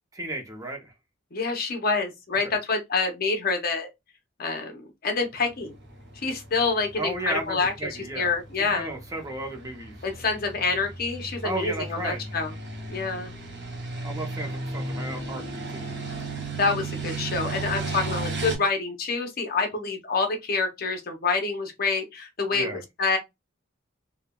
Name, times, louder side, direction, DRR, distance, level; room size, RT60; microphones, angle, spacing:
voice 1, 0.1-0.9 7.0-8.3 8.6-9.9 11.4-12.2 14.0-15.9 22.5-22.8, right 2 dB, 15° right, 0.6 m, -34 dB
voice 2, 1.3-3.9 4.4-5.7 6.2-8.9 10.0-12.5 12.9-13.3 16.6-23.2, left 4 dB, 50° left, 0.7 m, -27 dB
sound 1, 5.6-18.6, right 2 dB, 60° right, 0.8 m, -35 dB
3.3 x 2.2 x 2.2 m
head